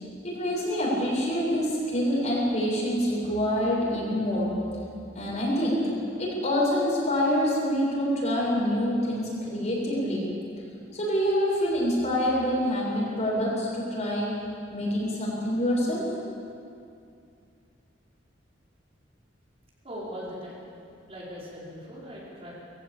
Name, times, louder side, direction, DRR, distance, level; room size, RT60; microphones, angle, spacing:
voice 1, 0.2-4.5 5.2-5.9 6.2-10.3 10.9-14.4 14.7-16.0, equal, 40° left, -5 dB, 7.1 m, -26 dB
voice 2, 19.8-20.6 21.1-22.5, equal, 35° right, -6 dB, 5.2 m, -39 dB
22.0 x 16.0 x 8.6 m, 2.5 s
head